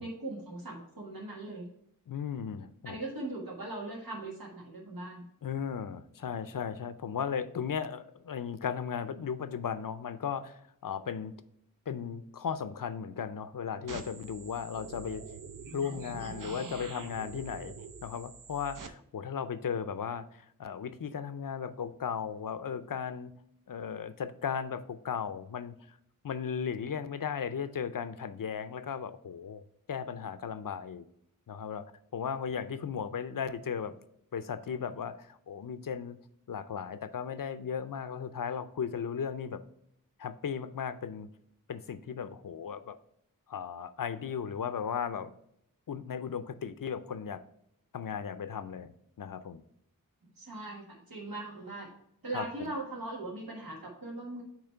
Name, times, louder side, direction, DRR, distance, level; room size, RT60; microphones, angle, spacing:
voice 1, 0.0-1.7 2.8-5.2 50.2-51.9 52.2-54.4, right 2 dB, 90° right, -3 dB, 1.6 m, -40 dB
voice 2, 2.1-3.0 5.4-11.3 11.9-15.2 15.7-17.7 18.0-23.3 23.7-25.8 26.2-29.6 29.9-31.1 31.5-33.9 34.3-36.2 36.5-39.6 40.2-41.3 41.7-43.0 43.5-45.3 45.9-47.4 47.9-48.9 49.2-49.6 52.3-52.5, left 7 dB, 70° left, 12 dB, 0.5 m, -36 dB
sound 1, 13.9-18.9, right 5 dB, 65° right, 0.7 m, -45 dB
8.8 x 3.1 x 4.4 m, 0.73 s
wide cardioid pair, 60°, 34 cm